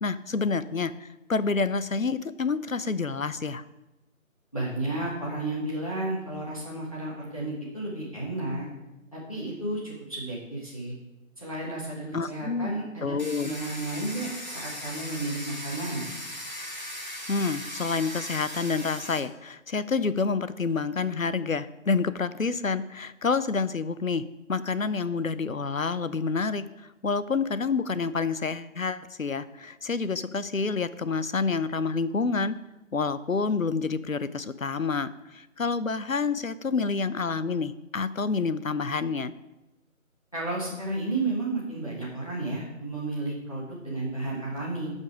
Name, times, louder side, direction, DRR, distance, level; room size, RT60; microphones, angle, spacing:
voice 1, 0.0-0.9 1.3-3.6 12.1-12.7 13.0-13.5 17.3-24.2 24.5-26.6 27.0-32.6 32.9-35.1 35.6-39.3, left 4 dB, 70° left, 14 dB, 0.7 m, -28 dB
voice 2, 4.5-8.7 9.1-10.9 11.4-16.0 40.3-44.9, right 2 dB, 25° left, -5 dB, 1.6 m, -32 dB
Domestic sounds home sounds, 13.2-19.2, equal, 35° right, 1.1 m, -38 dB
12.5 x 5.4 x 4.7 m, 1.0 s
figure-of-eight pair, 175°, 41 cm